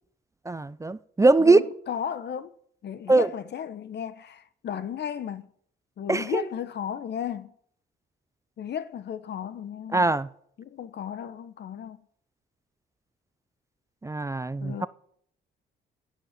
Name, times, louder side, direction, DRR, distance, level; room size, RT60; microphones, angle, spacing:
voice 1, 0.5-1.6 3.1-3.3 6.1-6.4 9.9-10.3 14.0-14.9, right 3 dB, 15° right, 0.6 m, -21 dB
voice 2, 1.4-2.5 2.8-5.5 6.0-7.5 8.6-10.1 10.6-12.0 14.6-14.9, left 8 dB, 60° left, 1.1 m, -34 dB
11.0 x 10.5 x 9.0 m
cardioid pair, 90°, 20 cm